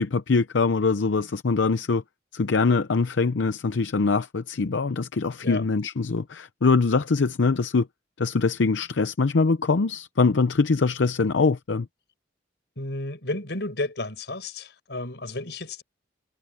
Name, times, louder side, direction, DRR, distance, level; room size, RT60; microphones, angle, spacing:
voice 1, 0.0-2.0 2.3-7.9 8.2-11.9, left 4 dB, 85° left, 0.6 m, -23 dB
voice 2, 12.8-15.8, left 2 dB, 65° left, 5.1 m, -32 dB
head